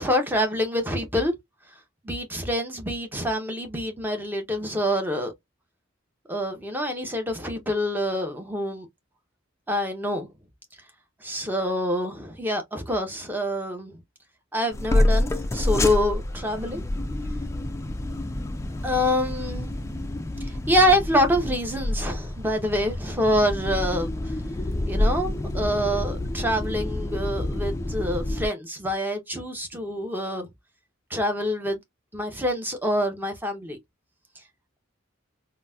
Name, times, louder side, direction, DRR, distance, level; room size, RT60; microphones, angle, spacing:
voice 1, 0.0-1.3 2.0-5.3 6.3-8.9 9.7-10.3 11.2-13.9 14.5-16.8 18.8-19.7 20.5-24.1 24.9-30.5 31.1-31.8 32.1-33.8, equal, 10° right, 0.7 m, -26 dB
sound 1, 14.7-28.5, left 1 dB, 15° left, 0.3 m, -28 dB
3.9 x 2.1 x 2.2 m
head